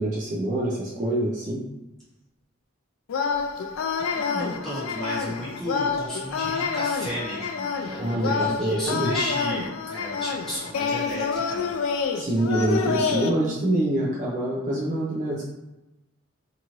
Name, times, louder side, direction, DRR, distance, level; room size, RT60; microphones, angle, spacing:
voice 1, 0.0-1.6 8.0-9.1 12.1-15.4, right 1 dB, 35° right, -4 dB, 0.4 m, -25 dB
sound 1, 3.1-13.3, left 5 dB, 80° left, 0.3 m, -28 dB
voice 2, 4.1-11.7 12.1-12.4, equal, ahead, -10 dB, 1.1 m, -34 dB
2.8 x 2.4 x 3.0 m, 0.97 s
head